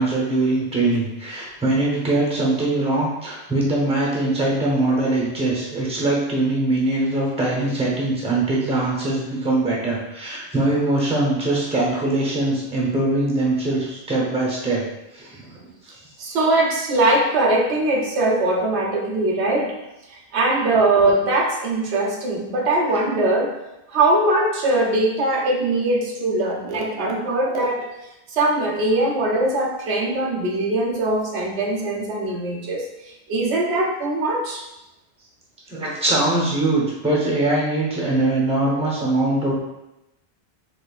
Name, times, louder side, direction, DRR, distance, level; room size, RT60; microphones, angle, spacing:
voice 1, 0.0-14.8 15.1-15.9 35.7-39.5, right 2 dB, 5° right, -3 dB, 0.7 m, -22 dB
voice 2, 16.2-19.8 20.1-23.5 23.9-27.9 28.3-34.6, right 2 dB, 85° right, -1 dB, 0.9 m, -21 dB
4.2 x 2.9 x 2.4 m, 0.92 s
omnidirectional pair, 1.1 m